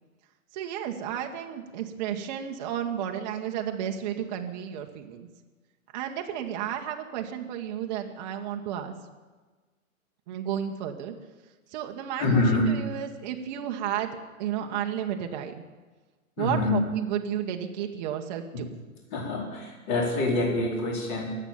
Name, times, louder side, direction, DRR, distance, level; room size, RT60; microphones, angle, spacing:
voice 1, 0.5-5.3 5.9-8.9 10.3-11.1 11.7-15.5 16.4-18.7, right 9 dB, 30° right, 3 dB, 1.2 m, -32 dB
voice 2, 12.2-12.7 16.4-16.8 19.1-21.4, left 2 dB, 30° left, 0 dB, 4.2 m, -25 dB
22.5 x 8.2 x 7.2 m, 1.3 s
hypercardioid pair, 155°, 43 cm